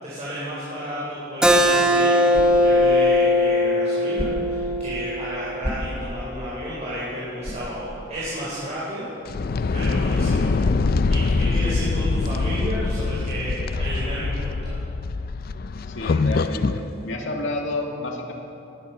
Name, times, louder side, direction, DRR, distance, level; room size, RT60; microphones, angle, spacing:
voice 1, 0.0-9.0 9.7-10.7 11.1-14.7, equal, 35° right, -8 dB, 4.2 m, -32 dB
Keyboard (musical), 1.4-6.6, left 1 dB, 5° right, 0.9 m, -20 dB
sound 1, 1.5-13.2, equal, 30° left, 2.1 m, -37 dB
sound 2, 9.2-16.8, left 3 dB, 50° left, 0.4 m, -24 dB
voice 2, 15.9-18.3, left 2 dB, 75° left, 1 dB, 2.1 m, -30 dB
19.0 x 11.0 x 5.8 m, 2.8 s
head